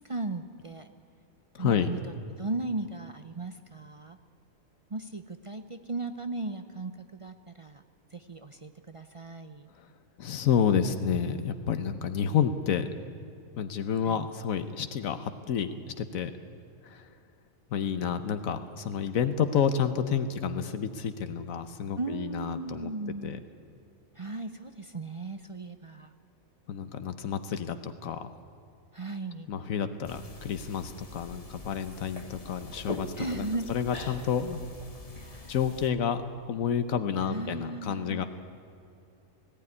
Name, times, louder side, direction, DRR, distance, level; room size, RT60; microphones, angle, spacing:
voice 1, 0.1-0.9 1.6-4.2 4.9-7.8 8.1-9.7 14.1-14.3 22.0-23.4 24.2-26.1 28.9-29.5 33.2-33.7 35.1-35.5 37.2-38.2, right 2 dB, 35° right, 8 dB, 0.5 m, -37 dB
voice 2, 1.5-1.9 9.8-9.9 10.2-12.9 13.6-15.7 16.0-16.3 16.8-17.1 17.7-22.9 23.2-23.4 26.7-28.3 29.5-34.6 35.5-38.2, left 7 dB, 80° left, 10 dB, 1.3 m, -30 dB
sound 1, 30.1-35.9, left 2 dB, 25° left, 1.4 m, -43 dB
19.0 x 15.5 x 9.7 m, 2.4 s
omnidirectional pair, 1.4 m